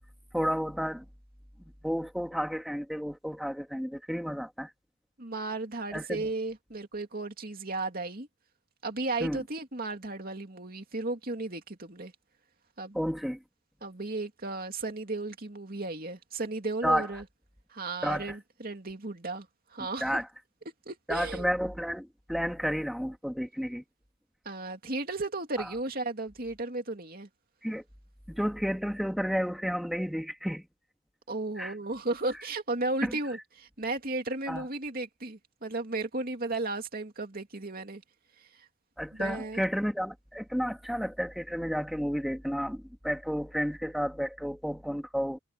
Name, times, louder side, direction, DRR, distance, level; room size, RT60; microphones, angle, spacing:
voice 1, 0.3-1.0 1.8-4.7 5.9-6.3 9.2-9.4 12.9-13.4 16.8-17.1 18.0-18.3 20.0-20.3 21.1-23.8 25.6-25.7 27.6-27.8 28.3-30.7 31.6-31.7 33.0-33.2 34.5-34.7 39.0-45.4, equal, ahead, 3.0 m, -31 dB
voice 2, 5.2-8.3 8.8-12.1 12.8-13.0 13.8-17.2 17.7-20.2 20.9-21.5 24.4-27.3 31.3-38.0 38.4-38.6 39.1-39.6, right 2 dB, 45° right, 2.6 m, -34 dB
head